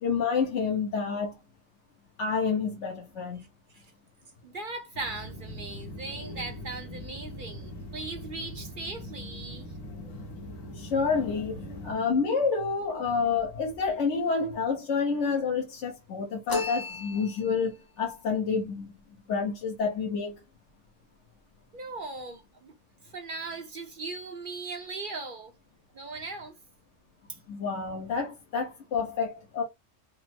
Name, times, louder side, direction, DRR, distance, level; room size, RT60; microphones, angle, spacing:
voice 1, 0.0-1.4 2.2-3.4 10.8-11.6 11.8-18.9 19.3-20.4 27.5-29.6, left 5 dB, 65° left, 1.2 m, -28 dB
voice 2, 4.4-9.7 21.7-22.7 23.0-25.5 25.9-26.5 27.3-27.4, right 3 dB, 55° right, 0.6 m, -39 dB
sound 1, 4.9-12.0, left 1 dB, 85° left, 1.4 m, -41 dB
sound 2, 16.5-17.7, left 4 dB, 30° left, 0.4 m, -34 dB
4.1 x 2.0 x 4.4 m
omnidirectional pair, 1.3 m